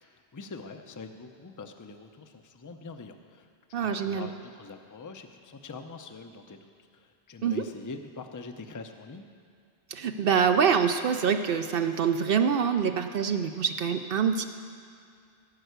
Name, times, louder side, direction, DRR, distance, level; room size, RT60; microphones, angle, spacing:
voice 1, 0.0-9.3, left 4 dB, 25° left, 6 dB, 0.5 m, -44 dB
voice 2, 3.7-4.3 7.4-7.7 9.9-14.4, right 7 dB, 65° right, 7 dB, 0.7 m, -25 dB
16.5 x 5.5 x 8.0 m, 2.5 s
omnidirectional pair, 1.1 m